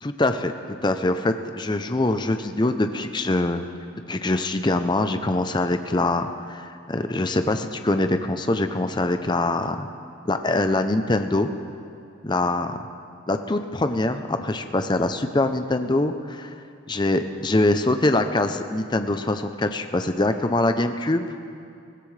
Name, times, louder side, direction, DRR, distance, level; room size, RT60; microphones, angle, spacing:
voice 1, 0.0-0.5 0.8-3.7 4.1-9.9 10.3-11.5 12.2-12.8 13.3-16.5 16.9-21.3, left 2 dB, 20° left, 8 dB, 0.5 m, -23 dB
21.5 x 15.5 x 3.3 m, 2.6 s
head